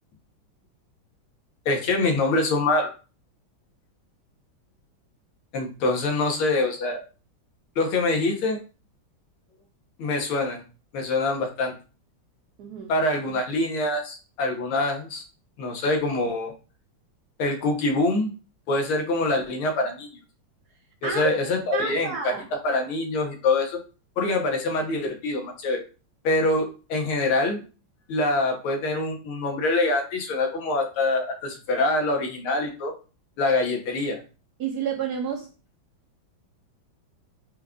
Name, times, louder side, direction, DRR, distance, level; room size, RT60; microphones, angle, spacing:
voice 1, 1.7-2.9 5.5-7.0 7.8-8.6 10.0-10.6 10.9-11.8 12.9-15.2 15.6-16.5 17.4-18.3 18.7-20.1 21.0-22.3 22.6-23.8 24.2-25.8 26.2-27.6 28.1-32.9 33.4-34.2, left 2 dB, 85° left, 3 dB, 1.8 m, -25 dB
voice 2, 12.6-12.9 21.0-21.4 21.7-22.4 34.6-35.5, right 6 dB, 75° right, 2 dB, 0.9 m, -29 dB
5.1 x 2.3 x 3.5 m, 0.35 s
omnidirectional pair, 2.3 m